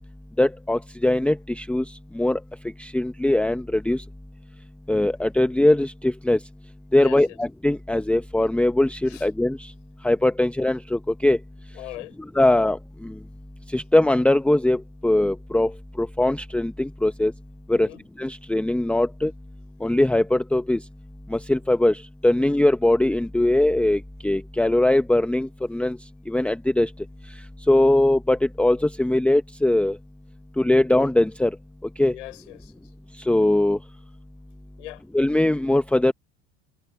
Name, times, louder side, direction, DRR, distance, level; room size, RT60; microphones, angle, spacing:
voice 1, 0.4-1.8 2.1-2.4 2.8-4.0 4.9-6.4 6.9-9.7 10.0-11.4 12.3-13.1 13.7-15.7 16.0-17.3 17.7-17.9 18.2-19.3 19.8-20.8 21.3-26.0 26.3-26.9 27.7-30.0 30.6-31.5 32.0-32.1 33.2-33.8 35.1-36.1, left 1 dB, 5° left, 1.0 m, -21 dB
voice 2, 6.9-7.4 9.1-9.3 11.7-12.2 17.7-18.0 32.1-32.7 34.8-35.0, left 16 dB, 80° left, 4.4 m, -40 dB
hypercardioid pair, 85°, 35 cm